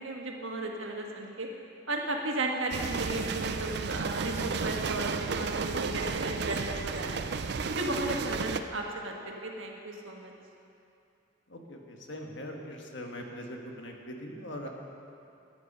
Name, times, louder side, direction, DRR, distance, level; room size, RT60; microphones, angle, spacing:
voice 1, 0.0-1.5 1.9-7.2 7.6-10.3, right 2 dB, 75° right, 1 dB, 1.5 m, -35 dB
sound 1, 2.7-8.6, right 5 dB, 55° right, 0.4 m, -33 dB
voice 2, 11.5-14.7, equal, 65° left, 1 dB, 1.5 m, -41 dB
14.0 x 9.5 x 5.4 m, 2.6 s
head